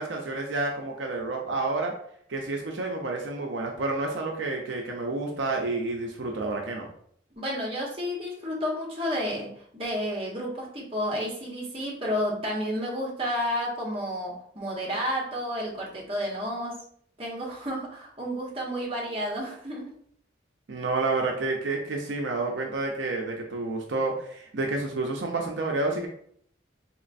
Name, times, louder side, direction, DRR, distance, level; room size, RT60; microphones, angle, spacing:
voice 1, 0.0-1.9 2.3-6.9 20.7-26.1, right 3 dB, 75° right, 1 dB, 0.6 m, -29 dB
voice 2, 7.4-16.8 17.2-19.9, equal, 30° right, -4 dB, 1.0 m, -31 dB
4.1 x 3.0 x 2.5 m, 0.63 s
head